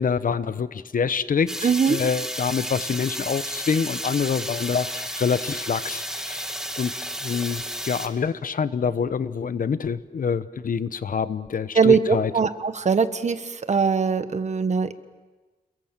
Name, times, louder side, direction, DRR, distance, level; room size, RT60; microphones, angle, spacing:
voice 1, 0.0-6.5 6.8-6.9 7.2-12.3, left 6 dB, 70° left, 14 dB, 1.0 m, -26 dB
sound 1, 1.5-8.1, equal, 5° right, 2.4 m, -32 dB
voice 2, 1.6-2.0 11.7-14.9, right 5 dB, 50° right, 11 dB, 1.3 m, -21 dB
28.5 x 22.0 x 7.5 m, 1.2 s
wide cardioid pair, 95°, 15 cm